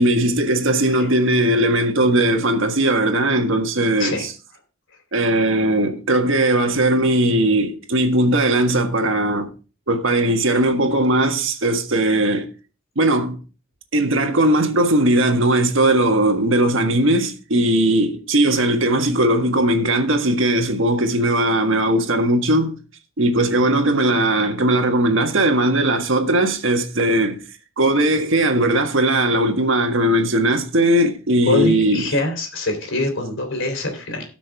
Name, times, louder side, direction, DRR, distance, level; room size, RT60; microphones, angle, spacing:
voice 1, 0.0-4.3 5.1-9.5 9.9-12.5 12.9-13.4 13.9-22.7 23.2-27.4 27.8-32.1, right 1 dB, 65° right, 1.6 m, -18 dB
voice 2, 31.4-34.2, left 1 dB, 65° left, 3.4 m, -24 dB
18.0 x 6.1 x 3.5 m
head